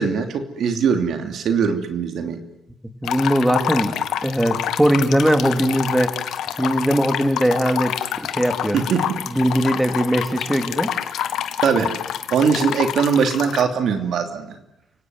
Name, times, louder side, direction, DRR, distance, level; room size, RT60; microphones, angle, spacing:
voice 1, 0.0-2.4 8.7-9.2 11.6-11.9 12.3-14.5, right 6 dB, 70° right, 6 dB, 2.9 m, -21 dB
sound 1, 3.0-13.6, left 10 dB, 80° left, 1.7 m, -27 dB
voice 2, 3.0-3.9 4.2-6.3 6.6-8.8 9.3-10.9, equal, 5° right, 7 dB, 2.8 m, -20 dB
29.5 x 18.0 x 9.6 m, 0.84 s
cardioid pair, 90°, 0 cm